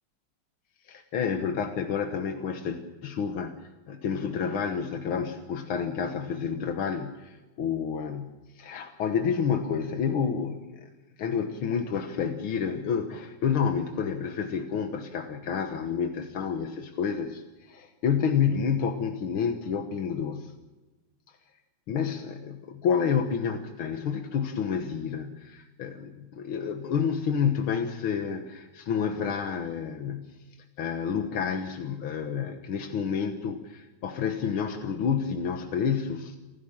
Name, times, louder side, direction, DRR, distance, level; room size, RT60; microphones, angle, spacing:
voice 1, 0.8-10.9 11.2-20.5 21.9-30.4 30.8-36.4, left 7 dB, 90° left, 5 dB, 2.2 m, -29 dB
28.5 x 15.5 x 7.3 m, 1.2 s
omnidirectional pair, 2.2 m